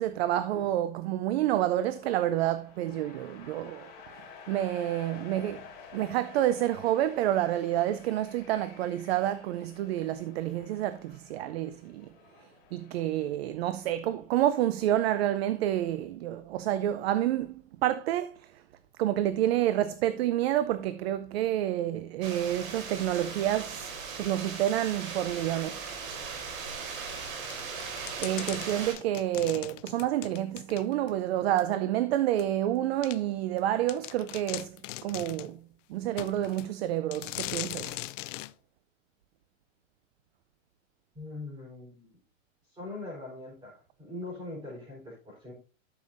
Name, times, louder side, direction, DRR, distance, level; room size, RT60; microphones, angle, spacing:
voice 1, 0.0-3.9 4.2-5.7 5.9-12.1 12.7-18.6 19.0-25.8 28.2-34.8 35.0-35.6 35.9-38.0, right 12 dB, 50° right, 0.6 m, -29 dB
sound 1, 1.8-13.4, left 6 dB, 25° left, 2.8 m, -51 dB
sound 2, 22.2-28.9, right 5 dB, 90° right, 3.8 m, -38 dB
sound 3, 27.5-31.1 31.6-31.7 32.4-32.5 33.0-33.2 33.6-33.7 33.9-35.5 36.2-36.7 37.1-38.5, left 17 dB, 70° left, 0.5 m, -40 dB
voice 2, 41.1-42.1 42.7-45.5, left 2 dB, 10° right, 4.3 m, -41 dB
12.0 x 6.9 x 2.6 m
supercardioid pair, 170°, 40 cm